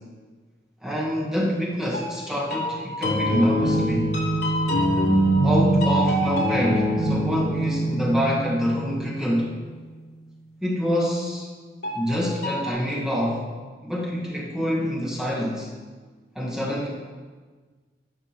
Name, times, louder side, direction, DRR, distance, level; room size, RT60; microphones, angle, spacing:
voice 1, 0.8-4.1 5.4-9.5 10.6-11.5 11.9-13.5 13.8-15.7 16.3-16.9, equal, 5° right, -5 dB, 1.4 m, -26 dB
sound 1, 1.9-9.6 11.8-12.7, right 1 dB, 75° left, 2.7 m, -24 dB
12.5 x 7.6 x 3.0 m, 1.4 s
head